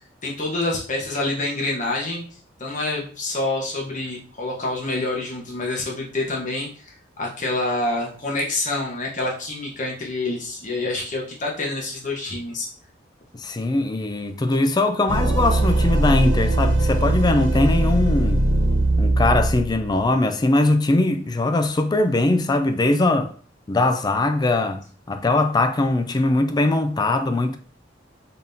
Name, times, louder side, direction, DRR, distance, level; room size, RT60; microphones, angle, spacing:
voice 1, 0.2-2.2 2.6-12.7, left 2 dB, 45° left, 1.2 m, -27 dB
voice 2, 13.4-18.4 19.0-23.3 23.7-24.8 25.1-27.6, left 2 dB, 20° left, 0.4 m, -21 dB
sound 1, 15.1-20.0, right 1 dB, 75° right, 0.6 m, -20 dB
4.1 x 3.6 x 2.7 m
head